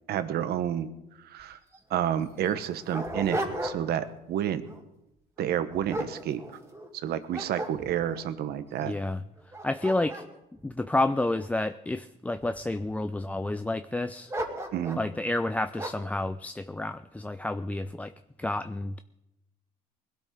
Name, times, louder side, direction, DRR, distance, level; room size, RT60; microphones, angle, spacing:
voice 1, 0.1-0.9 1.3-1.6 1.9-4.6 5.4-6.4 7.0-8.9 14.7-15.0, right 10 dB, 70° right, 11 dB, 1.2 m, -30 dB
Dog, 1.4-1.5 1.7-1.8 2.4-4.1 4.5-4.8 5.4-6.9 7.3-8.2 8.8-8.9 9.4-11.7 12.4-13.0 14.3-15.1 15.8-16.2, right 1 dB, 15° right, 2.4 m, -36 dB
voice 2, 8.8-10.2 10.6-14.3 15.0-18.1 18.4-19.0, left 2 dB, 10° left, 10 dB, 0.4 m, -30 dB
21.0 x 12.5 x 3.9 m, 0.89 s
cardioid pair, 110°, 17 cm